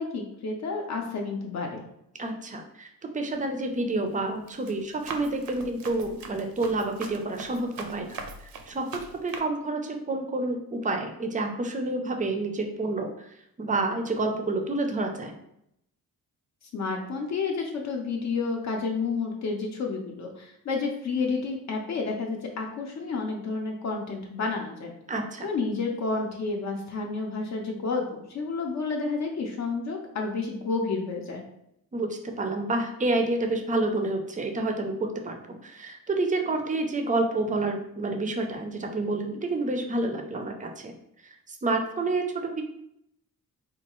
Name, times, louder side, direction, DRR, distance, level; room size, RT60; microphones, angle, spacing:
voice 1, 0.0-1.8 16.6-24.9 25.4-31.4, left 4 dB, 55° left, 1 dB, 0.5 m, -30 dB
voice 2, 2.2-2.9 3.1-8.2 8.7-8.9 9.2-13.1 13.6-15.3 25.1-25.5 31.9-40.9 41.5-42.6, right 2 dB, 25° right, 4 dB, 0.4 m, -29 dB
Run, 3.3-3.7 4.1-9.4, right 4 dB, 80° right, 0.5 m, -42 dB
4.3 x 2.3 x 2.9 m, 0.77 s
wide cardioid pair, 160°, 34 cm